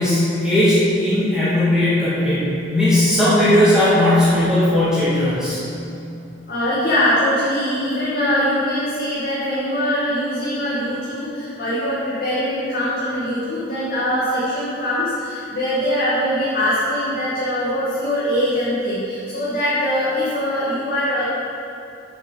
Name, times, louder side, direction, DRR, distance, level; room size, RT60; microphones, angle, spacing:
voice 1, 0.0-5.6, left 1 dB, 5° right, -11 dB, 2.4 m, -17 dB
voice 2, 6.5-21.2, equal, 55° left, -10 dB, 2.3 m, -22 dB
7.7 x 6.8 x 7.6 m, 2.6 s
head